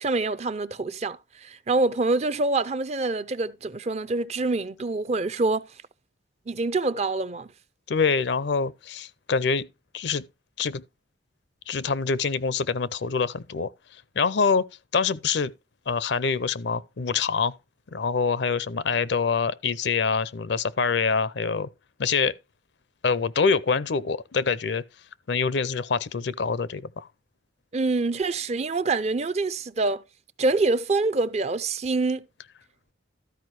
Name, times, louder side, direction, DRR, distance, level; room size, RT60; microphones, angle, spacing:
voice 1, 0.0-5.6 6.5-7.5 27.7-30.0 30.4-32.2, right 3 dB, 35° right, 0.4 m, -26 dB
voice 2, 7.9-9.7 9.9-10.2 10.6-10.8 11.7-13.7 14.2-14.6 14.9-15.5 15.9-17.5 17.9-21.7 22.0-22.3 23.0-24.8 25.3-27.1, left 5 dB, 60° left, 0.5 m, -25 dB
13.0 x 4.7 x 4.6 m
head